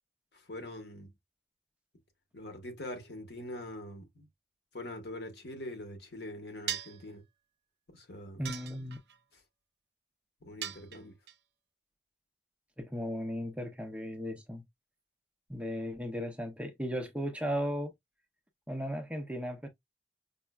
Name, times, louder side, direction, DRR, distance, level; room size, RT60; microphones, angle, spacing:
voice 1, 0.3-1.1 2.3-4.3 4.7-7.2 7.9-8.4 10.4-11.1, left 1 dB, 70° left, 1.1 m, -43 dB
sound 1, 6.7-7.1 8.4-9.2 10.6-11.3, right 10 dB, 65° right, 0.5 m, -39 dB
voice 2, 8.4-9.0 12.8-14.6 15.5-17.9 18.7-19.7, equal, 5° right, 0.5 m, -36 dB
5.3 x 2.0 x 2.3 m
head